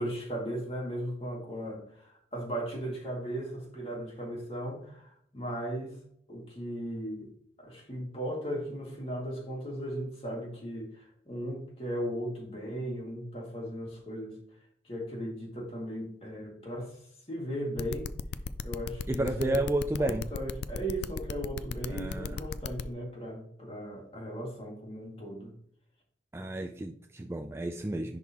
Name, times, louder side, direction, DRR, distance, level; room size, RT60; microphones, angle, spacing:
voice 1, 0.0-6.0 6.3-7.3 7.6-14.4 14.8-17.0 17.3-18.1 18.6-19.6 20.0-25.5, right 1 dB, 30° left, 2.2 m, -37 dB
sound 1, 17.8-22.8, left 6 dB, 65° left, 0.4 m, -36 dB
voice 2, 19.1-20.3 21.9-22.4 26.3-28.2, right 1 dB, 15° right, 0.3 m, -31 dB
10.5 x 3.8 x 2.9 m
head